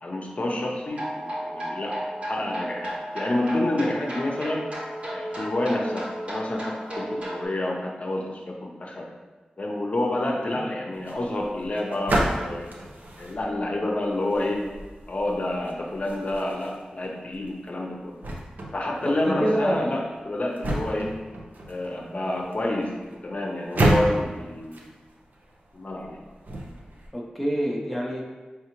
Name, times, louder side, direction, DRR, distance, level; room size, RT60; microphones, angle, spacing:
voice 1, 0.0-4.7 5.1-9.1 9.6-12.7 13.2-14.7 15.1-18.2 18.7-21.2 21.7-24.8 25.7-26.2, left 1 dB, 50° left, 0 dB, 0.6 m, -29 dB
sound 1, 0.9-7.4, equal, 45° right, 1.3 m, -33 dB
sound 2, 10.9-27.1, right 1 dB, 70° right, 0.6 m, -32 dB
voice 2, 19.0-19.9 27.1-28.2, equal, ahead, -2 dB, 0.6 m, -27 dB
4.6 x 3.4 x 3.0 m, 1.3 s
wide cardioid pair, 80°, 3 cm